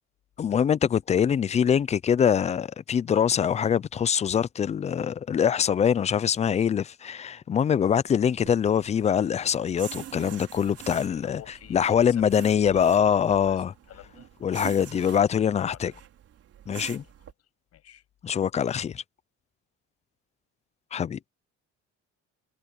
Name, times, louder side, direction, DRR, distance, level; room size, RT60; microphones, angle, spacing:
voice 1, 0.4-11.4 11.7-13.7 14.4-15.9 16.7-17.0 18.2-19.0 20.9-21.2, left 8 dB, 25° left, 0.3 m, -24 dB
sound 1, 8.2-17.3, right 10 dB, 50° right, 4.6 m, -45 dB
voice 2, 11.1-12.3 12.6-14.8 15.6-16.0 16.7-17.1 17.7-18.0, left 11 dB, 55° left, 8.0 m, -46 dB
cardioid pair, 155°, 30 cm